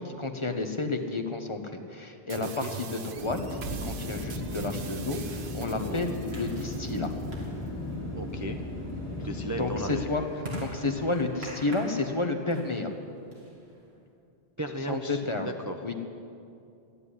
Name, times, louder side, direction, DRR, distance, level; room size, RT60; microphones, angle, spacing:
voice 1, 0.0-3.4 3.7-7.1 9.6-10.2 10.6-12.9 14.9-15.5 15.8-15.9, left 3 dB, 30° left, 5 dB, 0.9 m, -31 dB
sound 1, 2.3-7.3, right 7 dB, 60° right, 0.9 m, -42 dB
voice 2, 2.4-2.7 5.7-6.1 8.2-8.6 9.1-10.3 14.6-15.9, right 1 dB, 20° right, 4 dB, 0.5 m, -36 dB
sound 2, 3.2-9.9, left 1 dB, 15° left, 3.7 m, -36 dB
sound 3, 6.3-14.0, equal, 75° right, 2.5 m, -45 dB
13.5 x 9.7 x 9.9 m, 2.6 s
omnidirectional pair, 1.1 m